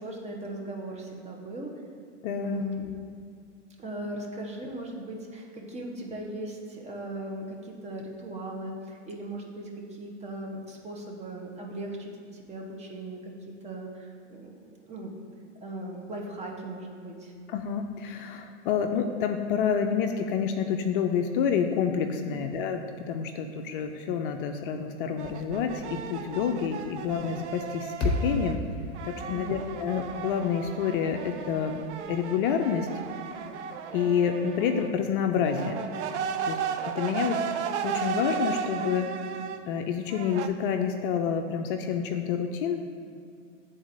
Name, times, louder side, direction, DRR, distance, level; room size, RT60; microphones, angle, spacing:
voice 1, 0.0-1.7 2.3-2.9 3.8-13.3 13.6-14.5 14.9-15.1 15.6-17.3 29.3-29.6, right 1 dB, 20° right, 0 dB, 0.9 m, -38 dB
voice 2, 2.2-2.6 17.5-28.6 29.0-32.9 33.9-35.8 36.4-36.6 36.9-37.4 37.8-39.1 39.7-42.8, left 7 dB, 45° left, 5 dB, 0.4 m, -28 dB
sound 1, 25.2-28.6 28.9-34.9 35.4-39.6 40.1-40.5, right 7 dB, 70° right, 0.6 m, -35 dB
sound 2, 28.0-32.3, left 1 dB, 30° left, 1.2 m, -34 dB
10.0 x 4.0 x 2.6 m, 2.2 s
hypercardioid pair, 115°, 36 cm